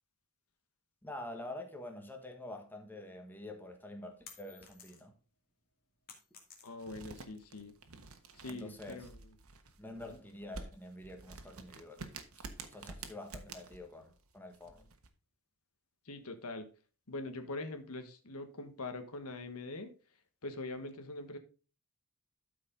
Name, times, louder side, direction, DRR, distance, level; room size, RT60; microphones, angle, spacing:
voice 1, 1.0-5.1 8.5-9.0 9.8-12.0 12.3-12.4 12.7-14.9, left 1 dB, 10° left, 1.3 m, -47 dB
sound 1, 4.2-5.3 5.6-7.1, left 6 dB, 45° left, 2.2 m, -55 dB
voice 2, 6.6-7.7 8.3-9.2 9.9-10.2 16.0-16.7 17.1-19.9 20.4-21.4, left 2 dB, 80° left, 1.4 m, -43 dB
sound 2, 6.8-15.1, right 3 dB, 75° right, 1.3 m, -49 dB
12.5 x 5.1 x 3.8 m
head